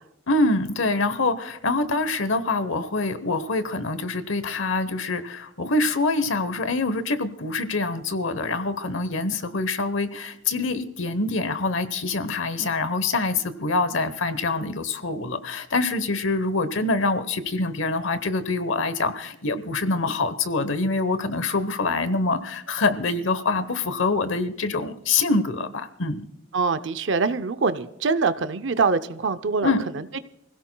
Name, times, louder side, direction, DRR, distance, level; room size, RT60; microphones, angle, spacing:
voice 1, 0.3-26.3 29.6-29.8, left 3 dB, 75° left, 1.0 m, -25 dB
voice 2, 26.5-29.7 30.1-30.2, right 4 dB, 65° right, 0.5 m, -24 dB
28.5 x 16.5 x 2.3 m
head